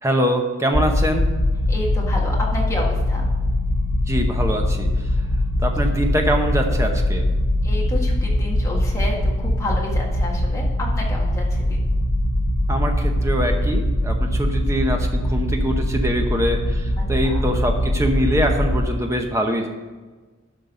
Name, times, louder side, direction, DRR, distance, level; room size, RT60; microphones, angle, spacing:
voice 1, 0.0-1.3 4.1-4.9 5.6-7.3 12.7-19.7, equal, 15° right, 3 dB, 0.9 m, -23 dB
sound 1, 0.7-18.8, left 1 dB, 65° left, 2.0 m, -22 dB
voice 2, 1.7-3.3 5.8-5.9 7.6-11.8 17.2-17.5, left 1 dB, 15° left, -3 dB, 1.7 m, -30 dB
11.5 x 5.4 x 5.4 m, 1.3 s
head